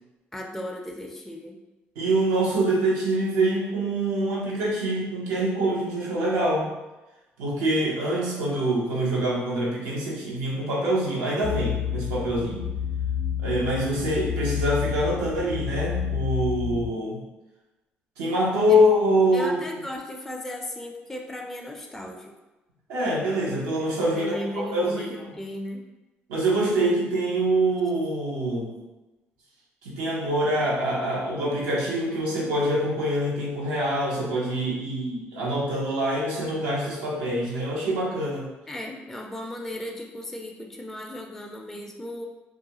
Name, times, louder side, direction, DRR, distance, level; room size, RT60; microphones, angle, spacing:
voice 1, 0.3-1.6 18.7-18.8 19.3-22.3 24.2-25.9 38.7-42.3, left 1 dB, 5° left, 0 dB, 0.3 m, -36 dB
voice 2, 2.0-6.7 7.4-12.6 13.4-17.2 18.2-19.6 22.9-25.1 26.3-28.8 29.8-38.5, right 1 dB, 90° right, -4 dB, 0.7 m, -25 dB
sound 1, 11.4-16.9, left 8 dB, 90° left, 0.3 m, -29 dB
2.3 x 2.2 x 2.8 m, 1.1 s
supercardioid pair, 70°, 5 cm